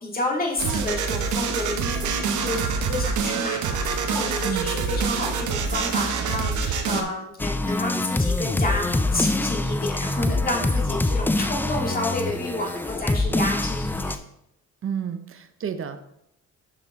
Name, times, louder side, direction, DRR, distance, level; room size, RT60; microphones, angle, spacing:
voice 1, 0.0-8.8 9.1-14.2, left 2 dB, 30° left, -1 dB, 2.0 m, -30 dB
sound 1, 0.6-7.0, right 5 dB, 75° right, 0.9 m, -26 dB
sound 2, 7.4-14.2, left 2 dB, 5° left, 0.3 m, -25 dB
voice 2, 14.8-16.0, right 8 dB, 45° right, 10 dB, 0.7 m, -30 dB
6.2 x 5.9 x 3.5 m, 0.76 s
cardioid pair, 90°, 30 cm